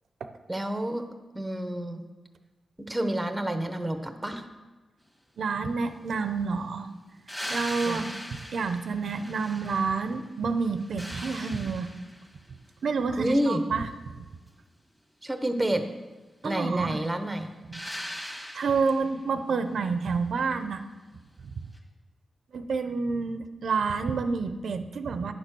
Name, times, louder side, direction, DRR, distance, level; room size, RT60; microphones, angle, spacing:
voice 1, 0.5-1.0 1.3-2.0 2.8-4.4 7.8-8.1 13.2-13.6 15.2-15.9 16.4-17.5, right 1 dB, 10° right, 7 dB, 0.8 m, -29 dB
voice 2, 5.4-6.9 7.5-11.9 12.8-13.9 14.2-14.3 16.4-17.0 17.7-17.8 18.5-20.8 22.5-25.3, right 4 dB, 70° right, 8 dB, 0.6 m, -29 dB
sound 1, 7.3-10.2 10.6-12.3 17.7-19.2 21.7-21.8, equal, 10° left, 1.6 m, -39 dB
10.0 x 6.8 x 6.1 m, 1.2 s
wide cardioid pair, 140°, 0 cm